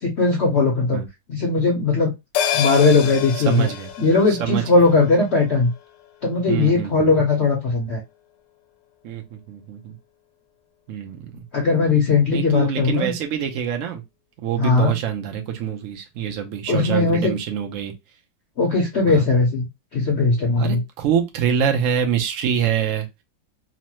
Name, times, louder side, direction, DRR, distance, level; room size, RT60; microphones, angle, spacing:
voice 1, 0.0-1.0 1.3-2.1 2.5-3.7 4.0-5.7 6.2-8.0 11.5-13.1 14.6-14.9 16.7-17.3 18.6-19.7 19.9-20.8, left 3 dB, 65° left, 0.7 m, -18 dB
sound 1, 2.3-7.1 7.4-7.5, left 9 dB, 80° left, 1.3 m, -29 dB
voice 2, 3.5-3.9 4.3-4.6 6.5-7.1 9.0-9.9 10.9-11.3 12.3-14.0 14.4-17.9 19.1-19.3 20.6-23.1, right 8 dB, 85° right, 0.7 m, -25 dB
3.1 x 2.1 x 2.8 m
omnidirectional pair, 2.0 m